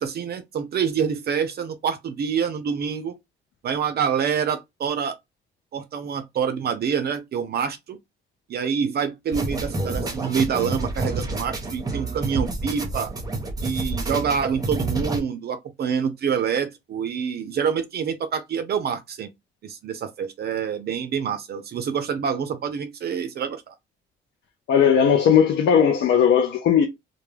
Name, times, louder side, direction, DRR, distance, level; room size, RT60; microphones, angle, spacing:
voice 1, 0.0-3.1 3.6-5.2 5.7-8.0 8.5-13.1 13.6-19.3 19.6-23.7, right 7 dB, 55° right, 0.5 m, -26 dB
sound 1, 9.3-15.2, right 2 dB, 20° right, 0.8 m, -28 dB
voice 2, 24.7-26.9, left 8 dB, 65° left, 0.5 m, -17 dB
2.2 x 2.2 x 3.1 m
cardioid pair, 90°, 20 cm